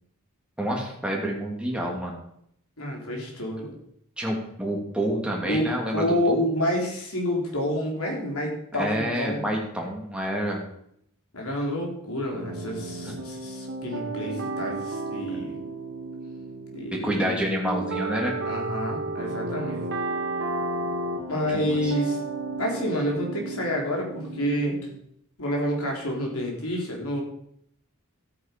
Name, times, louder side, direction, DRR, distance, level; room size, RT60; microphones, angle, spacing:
voice 1, 0.6-2.2 4.2-6.5 8.7-10.6 13.0-13.2 17.0-18.4 21.3-21.9, right 1 dB, 5° right, -2 dB, 2.7 m, -28 dB
voice 2, 2.8-3.7 5.5-9.5 11.3-15.6 16.7-17.5 18.5-19.8 21.3-22.2 22.6-24.8 25.4-27.2, equal, 80° left, 0 dB, 3.8 m, -28 dB
sound 1, 12.3-25.0, right 2 dB, 55° right, 1.8 m, -33 dB
14.0 x 8.9 x 5.3 m, 0.72 s
head